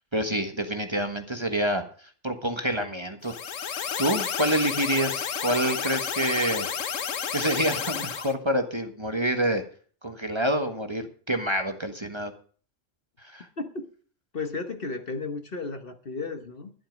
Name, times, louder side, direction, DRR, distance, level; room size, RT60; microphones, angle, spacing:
voice 1, 0.1-3.3 4.0-6.7 7.3-9.6 10.0-12.3 13.2-13.5, right 1 dB, 20° right, 6 dB, 1.4 m, -27 dB
sound 1, 3.2-8.3, left 7 dB, 70° left, 1.3 m, -31 dB
voice 2, 13.6-13.9 14.3-16.7, left 3 dB, 45° left, 7 dB, 1.4 m, -34 dB
12.0 x 11.5 x 5.2 m, 0.42 s
omnidirectional pair, 1.4 m